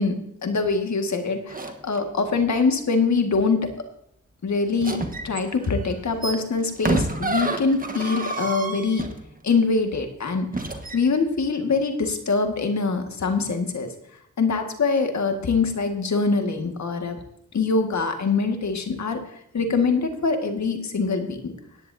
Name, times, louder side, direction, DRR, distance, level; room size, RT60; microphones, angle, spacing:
voice 1, 0.0-3.7 4.4-9.0 9.4-10.6 10.9-13.9 14.4-17.2 17.5-19.2 19.5-21.5, left 4 dB, 60° left, 5 dB, 1.9 m, -24 dB
sound 1, 1.5-2.0 4.8-9.5 10.5-11.0, right 2 dB, 25° right, 1.5 m, -29 dB
17.0 x 10.0 x 2.7 m, 0.76 s
cardioid pair, 60°, 32 cm